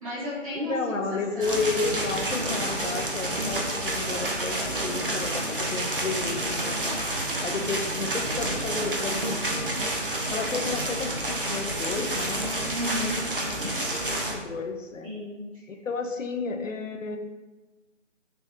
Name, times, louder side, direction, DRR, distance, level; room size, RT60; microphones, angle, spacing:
voice 1, 0.0-1.6 12.6-14.0 15.0-15.4, equal, 25° right, -11 dB, 1.3 m, -34 dB
voice 2, 0.5-7.1 7.4-9.4 10.3-12.5 14.1-15.1 15.7-17.2, left 4 dB, 85° left, 5 dB, 0.6 m, -32 dB
sound 1, 1.4-14.3, right 1 dB, 45° right, 0.5 m, -29 dB
3.9 x 2.7 x 2.3 m, 1.2 s
figure-of-eight pair, 160°, 38 cm